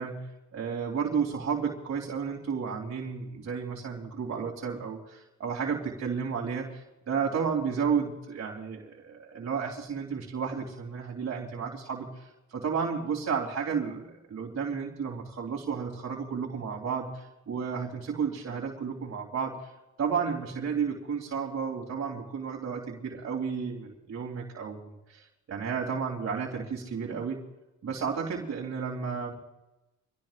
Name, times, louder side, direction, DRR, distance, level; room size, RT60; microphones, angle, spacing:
voice 1, 0.0-19.7 20.0-27.4 27.8-29.3, right 6 dB, 50° right, -2 dB, 3.3 m, -32 dB
25.5 x 17.0 x 2.5 m, 0.97 s
cardioid pair, 90°, 30 cm